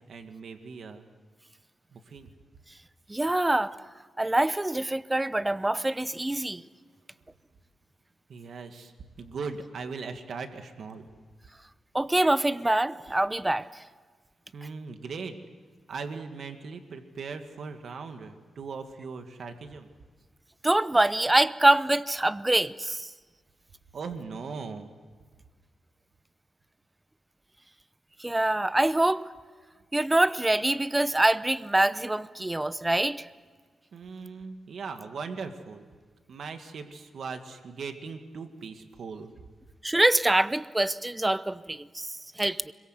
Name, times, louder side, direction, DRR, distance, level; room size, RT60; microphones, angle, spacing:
voice 1, 0.1-1.0 1.9-2.3 8.3-8.9 9.2-11.1 14.5-15.4 15.9-19.9 23.9-24.9 33.9-35.9 36.3-39.3, right 5 dB, 65° right, 6 dB, 2.0 m, -39 dB
voice 2, 3.1-3.7 4.2-6.6 11.9-13.8 20.6-23.1 28.2-29.2 29.9-33.3 39.8-42.7, right 1 dB, 15° right, 15 dB, 0.7 m, -25 dB
25.5 x 23.0 x 8.1 m, 1.5 s
cardioid pair, 110°, 0 cm